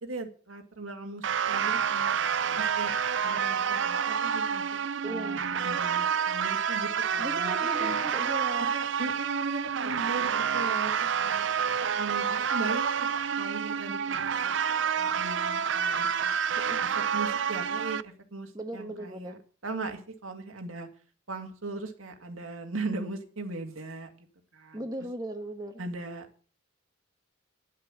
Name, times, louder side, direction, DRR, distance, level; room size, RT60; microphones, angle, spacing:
voice 1, 0.0-2.2 2.6-2.9 3.2-8.0 8.7-11.5 12.0-12.9 13.4-14.5 15.0-16.4 16.8-20.9 21.3-24.3 24.5-24.8 25.8-26.5, right 2 dB, 75° right, 5 dB, 2.2 m, -39 dB
sound 1, 1.2-18.0, right 7 dB, 60° right, 0.5 m, -28 dB
voice 2, 5.0-5.4 7.2-8.7 16.6-16.8 18.5-19.4 24.7-25.8, right 1 dB, 20° right, 4 dB, 1.3 m, -37 dB
11.0 x 7.6 x 7.7 m, 0.41 s
head